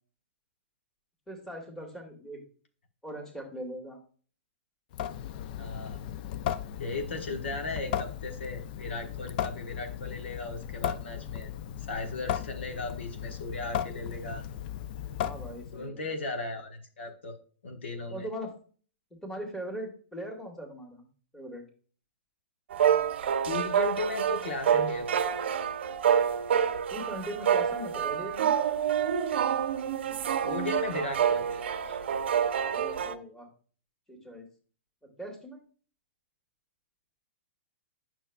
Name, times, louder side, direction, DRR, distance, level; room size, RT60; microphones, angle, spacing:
voice 1, 1.3-2.4 3.0-4.0 15.2-16.1 18.1-18.5 19.1-21.1 21.3-21.6 26.9-28.6 32.7-33.5 34.1-34.5 35.0-35.6, equal, 5° left, 2 dB, 1.8 m, -40 dB
Water tap faucet / Sink (filling or washing) / Drip, 4.9-15.8, left 10 dB, 50° left, 0.4 m, -36 dB
voice 2, 5.6-6.0 6.8-11.5 11.8-14.4 15.7-17.4 17.6-18.3 23.4-25.3 30.4-32.0, left 3 dB, 75° left, 4 dB, 1.3 m, -36 dB
sound 1, 22.7-33.1, right 8 dB, 65° right, 0.6 m, -27 dB
9.0 x 6.1 x 2.3 m, 0.41 s
hypercardioid pair, 110°, 6 cm